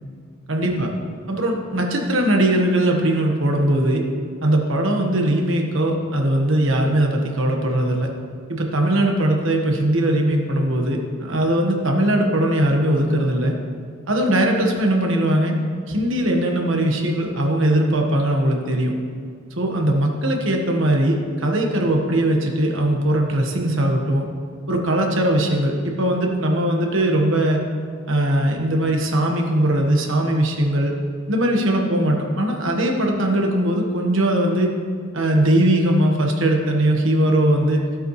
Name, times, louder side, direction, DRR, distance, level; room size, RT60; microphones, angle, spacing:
voice 1, 0.5-0.9 1.3-4.0 4.4-8.1 8.5-13.6 14.1-15.5 15.9-18.9 19.5-24.2 24.7-27.6 28.1-30.9 31.3-34.7 35.1-37.9, right 1 dB, 70° right, 1 dB, 1.4 m, -20 dB
14.5 x 7.8 x 3.2 m, 2.2 s
head